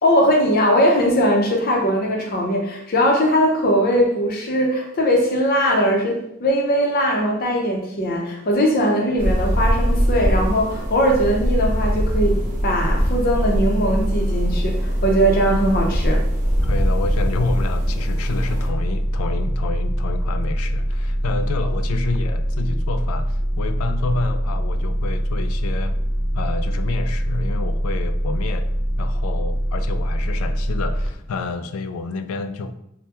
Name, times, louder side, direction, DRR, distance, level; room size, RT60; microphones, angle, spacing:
voice 1, 0.0-16.2, equal, 45° left, 1 dB, 0.6 m, -20 dB
sound 1, 9.2-18.7, equal, 40° right, 0.7 m, -24 dB
sound 2, 11.3-31.1, equal, ahead, 0.4 m, -23 dB
voice 2, 16.6-26.0 26.3-28.7 29.0-32.7, left 3 dB, 85° left, 10 dB, 0.3 m, -28 dB
3.3 x 2.1 x 2.8 m, 0.78 s
head